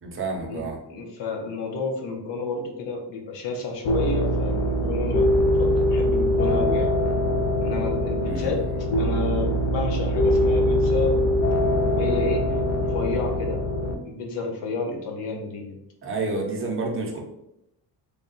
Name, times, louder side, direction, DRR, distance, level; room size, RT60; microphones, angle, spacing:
voice 1, 0.0-0.8 8.2-8.8 16.0-17.2, right 3 dB, 30° right, -1 dB, 0.7 m, -29 dB
voice 2, 0.9-7.0 7.6-8.6 9.0-11.3 11.8-13.6 14.0-15.8, left 4 dB, 85° left, 1 dB, 0.9 m, -31 dB
sound 1, 3.8-13.9, left 1 dB, 40° left, 0.5 m, -23 dB
3.5 x 2.3 x 3.9 m, 0.84 s
cardioid pair, 165°, 42 cm